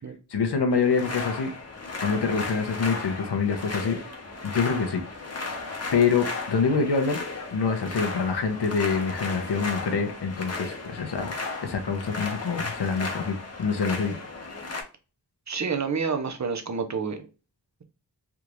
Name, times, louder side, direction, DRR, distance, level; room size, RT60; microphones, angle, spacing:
voice 1, 0.3-1.5 2.0-4.0 4.4-5.0 5.9-7.2 7.5-11.3 11.6-14.2, left 5 dB, 80° left, 0.9 m, -26 dB
sound 1, 0.7-14.8, left 3 dB, 40° left, 0.9 m, -35 dB
voice 2, 15.5-17.3, right 5 dB, 45° right, 0.7 m, -28 dB
3.6 x 2.4 x 3.0 m
wide cardioid pair, 60°, 40 cm